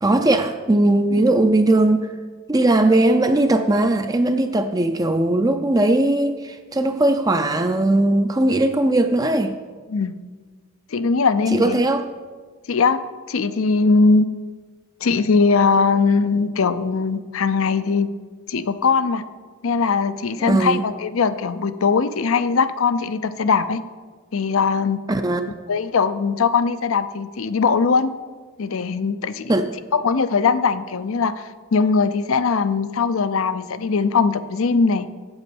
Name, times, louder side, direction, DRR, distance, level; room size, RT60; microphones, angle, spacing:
voice 1, 0.0-2.1 2.5-9.5 11.5-12.0 20.4-20.8 25.1-25.5 29.5-29.7, right 2 dB, 15° right, 7 dB, 0.4 m, -19 dB
voice 2, 10.9-11.8 12.7-13.0 13.3-14.3 15.0-18.1 18.5-19.2 19.6-23.8 24.3-25.0 25.7-28.1 28.6-29.5 29.9-35.1, left 4 dB, 70° left, 13 dB, 0.5 m, -20 dB
8.5 x 8.0 x 7.0 m, 1.5 s
head